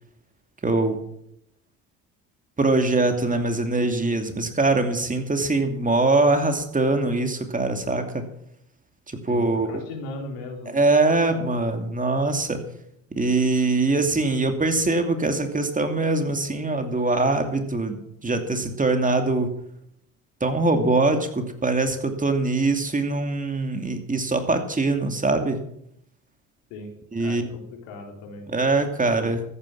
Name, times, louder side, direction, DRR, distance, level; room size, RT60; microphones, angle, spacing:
voice 1, 0.6-1.0 2.6-8.2 9.1-9.7 10.7-12.6 13.1-18.0 18.2-19.5 20.4-25.6 27.1-27.5 28.5-29.4, right 2 dB, 20° right, 6 dB, 2.7 m, -23 dB
voice 2, 9.3-10.8 11.3-11.4 26.7-26.9 27.2-28.5 29.0-29.3, left 3 dB, 80° left, 2 dB, 3.9 m, -38 dB
14.0 x 9.8 x 7.4 m, 0.74 s
hypercardioid pair, 65°, 39 cm